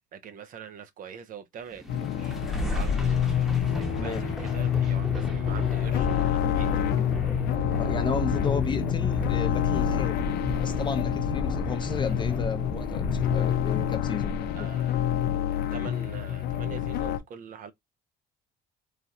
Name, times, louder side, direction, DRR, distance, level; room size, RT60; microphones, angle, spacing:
voice 1, 0.1-2.4 2.7-6.9 14.6-15.0 15.7-17.7, right 7 dB, 55° right, 0.5 m, -43 dB
sound 1, 1.7-14.8, left 1 dB, ahead, 0.9 m, -33 dB
sound 2, 1.9-17.2, left 11 dB, 75° left, 0.5 m, -28 dB
voice 2, 7.8-10.2 10.6-14.7, left 5 dB, 30° left, 0.6 m, -33 dB
3.2 x 2.3 x 2.6 m
cardioid pair, 110°, 17 cm